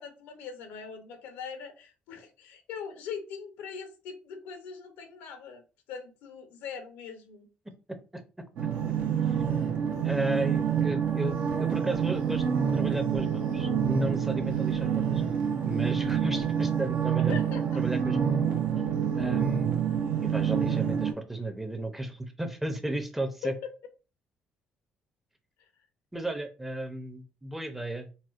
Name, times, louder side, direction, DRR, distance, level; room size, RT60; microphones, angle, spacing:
voice 1, 0.0-5.6 5.9-7.5 17.3-17.8 23.4-23.7, left 6 dB, 90° left, 7 dB, 0.7 m, -41 dB
sound 1, 8.6-21.1, right 8 dB, 75° right, 0.7 m, -27 dB
voice 2, 10.0-12.4 12.7-15.2 15.7-17.4 17.8-18.3 19.2-19.8 20.2-23.5 26.1-28.1, right 2 dB, 10° right, 7 dB, 0.6 m, -34 dB
4.2 x 2.2 x 2.4 m, 0.33 s
cardioid pair, 90°, 3 cm